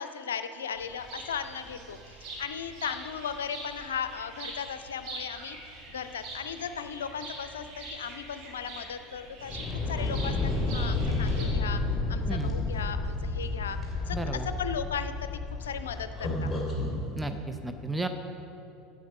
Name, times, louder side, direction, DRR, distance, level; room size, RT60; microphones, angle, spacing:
voice 1, 0.0-5.6 5.9-14.2 14.6-15.1 15.6-16.5, left 7 dB, 70° left, 10 dB, 0.5 m, -37 dB
sound 1, 0.8-11.5, right 2 dB, 50° right, 2.2 m, -44 dB
sound 2, 9.4-17.0, left 2 dB, 10° left, 2.5 m, -31 dB
voice 2, 14.1-14.5 17.1-18.1, right 2 dB, 5° right, 7 dB, 0.6 m, -33 dB
9.2 x 7.5 x 6.0 m, 2.9 s
figure-of-eight pair, 75°, 0 cm